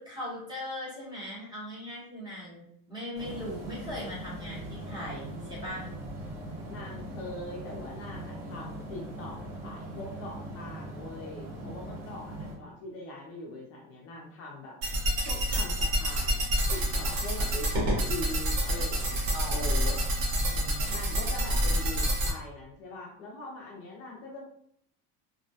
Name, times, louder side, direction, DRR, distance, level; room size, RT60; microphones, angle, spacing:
voice 1, 0.0-5.9 19.3-20.1 20.4-21.0, left 1 dB, 10° right, -6 dB, 0.8 m, -40 dB
sound 1, 3.1-12.5, right 1 dB, 40° right, 0.9 m, -40 dB
voice 2, 6.7-14.8 15.3-16.4 16.7-20.0 20.9-24.5, left 2 dB, 45° left, -2 dB, 0.5 m, -42 dB
sound 2, 14.8-22.3, equal, 70° right, 0.8 m, -28 dB
2.3 x 2.1 x 2.6 m, 0.68 s
cardioid pair, 170°, 34 cm